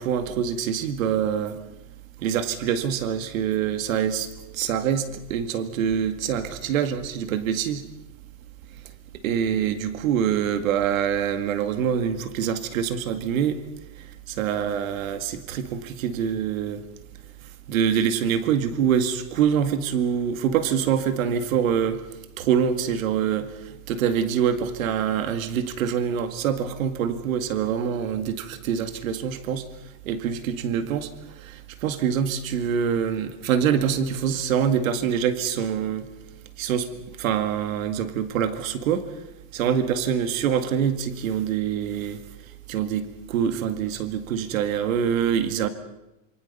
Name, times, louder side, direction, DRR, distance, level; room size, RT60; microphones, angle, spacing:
voice 1, 0.0-1.6 2.2-4.3 4.5-7.8 9.2-13.6 14.3-16.8 17.7-22.0 22.4-23.5 23.9-29.6 30.1-31.1 31.4-36.1 36.6-36.9 37.2-39.0 39.5-42.2 42.7-45.7, right 8 dB, 80° right, 10 dB, 2.2 m, -25 dB
27.0 x 24.5 x 5.5 m, 0.96 s
supercardioid pair, 150°, 40 cm